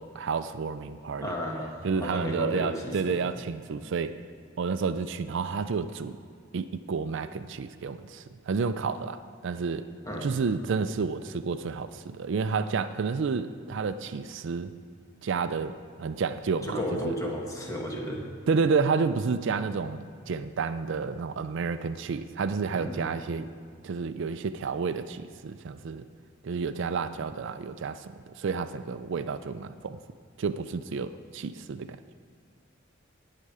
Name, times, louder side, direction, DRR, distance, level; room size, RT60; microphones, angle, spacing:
voice 1, 0.0-1.3 1.8-4.2 4.6-6.2 6.5-9.8 10.2-14.7 15.2-17.1 18.5-23.5 23.8-26.1 26.4-30.0 30.4-32.0, right 5 dB, 65° right, 12 dB, 0.4 m, -30 dB
voice 2, 1.2-3.2 10.1-10.3 16.6-18.2 22.7-23.1, equal, 15° left, -1 dB, 1.8 m, -33 dB
18.0 x 6.6 x 4.9 m, 2.2 s
head